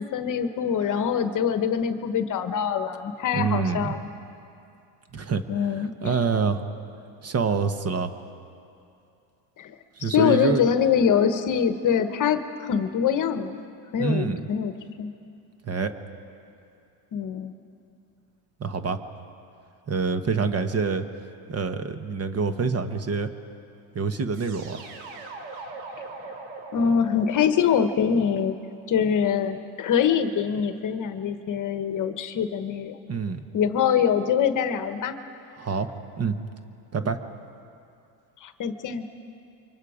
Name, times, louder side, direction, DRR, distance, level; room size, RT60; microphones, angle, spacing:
voice 1, 0.0-4.1 5.5-6.2 9.6-9.7 10.0-13.6 13.9-15.1 17.1-17.5 26.7-28.6 28.9-33.0 33.5-35.2 38.4-39.1, left 7 dB, 40° left, 9 dB, 1.2 m, -24 dB
voice 2, 3.3-3.9 5.1-5.4 5.8-6.6 7.2-8.1 10.0-10.7 14.0-14.4 15.6-15.9 18.6-19.0 19.9-21.1 21.5-23.3 23.9-24.8 33.1-33.4 35.6-35.9 36.2-36.4 36.9-37.2, right 5 dB, 30° right, 9 dB, 1.2 m, -26 dB
sound 1, 24.3-29.3, right 3 dB, 80° right, 3.6 m, -42 dB
28.5 x 24.5 x 5.0 m, 2.6 s
supercardioid pair, 115°, 49 cm